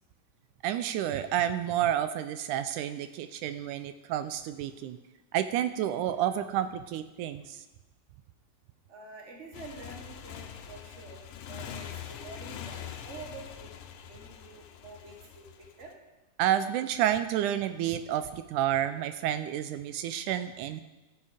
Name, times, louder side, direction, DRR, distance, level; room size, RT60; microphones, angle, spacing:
voice 1, 0.6-5.0 5.3-7.6 16.4-20.8, right 11 dB, 80° right, 11 dB, 1.9 m, -30 dB
voice 2, 8.9-13.8 14.1-15.5 15.8-15.9, right 3 dB, 55° right, 1 dB, 0.7 m, -47 dB
Motorcycle, 9.5-15.9, left 9 dB, 85° left, 2.4 m, -43 dB
14.5 x 8.4 x 5.0 m, 1.0 s
omnidirectional pair, 3.8 m